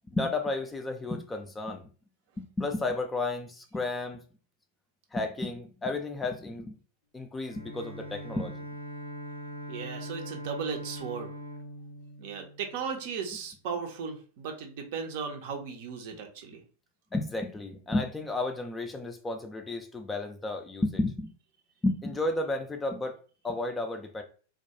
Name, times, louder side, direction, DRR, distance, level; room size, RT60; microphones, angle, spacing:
voice 1, 0.1-1.8 2.4-4.2 5.1-6.8 7.1-8.6 17.1-21.3 21.8-23.2 23.4-24.2, left 2 dB, 10° left, 4 dB, 0.4 m, -32 dB
Bowed string instrument, 7.4-13.1, equal, 85° left, 0.5 m, -41 dB
voice 2, 9.7-11.3 12.2-16.6, right 6 dB, 50° right, 4 dB, 0.5 m, -36 dB
2.2 x 2.2 x 2.7 m, 0.39 s
figure-of-eight pair, 90°, 0 cm